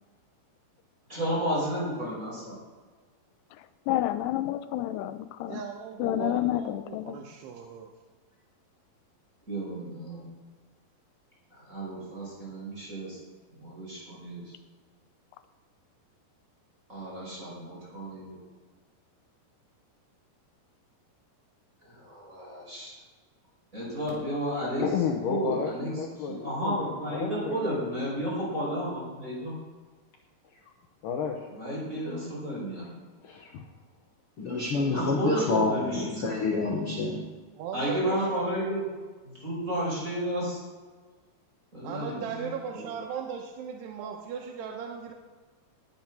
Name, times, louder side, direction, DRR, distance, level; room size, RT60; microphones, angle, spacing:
voice 1, 1.1-2.5 9.5-10.2 11.7-13.2 13.6-14.4 17.0-18.4 21.8-22.9 23.7-24.8 25.3-25.9 26.3-29.5 31.5-32.9 34.9-36.3 37.7-38.8 39.2-40.6 41.7-42.4 42.7-42.8, right 1 dB, 20° right, -6 dB, 5.6 m, -32 dB
voice 2, 3.9-5.6 6.0-7.2, left 13 dB, 90° left, 12 dB, 2.8 m, -29 dB
voice 3, 5.4-7.9 37.6-38.5 41.8-45.1, right 7 dB, 85° right, 1 dB, 3.1 m, -38 dB
voice 4, 24.8-28.3 30.5-30.6 31.0-31.5 33.2-33.7, left 6 dB, 70° left, 2 dB, 2.2 m, -33 dB
voice 5, 34.4-37.3, left 3 dB, 55° left, -1 dB, 1.6 m, -28 dB
19.0 x 7.2 x 6.1 m, 1.4 s
omnidirectional pair, 4.8 m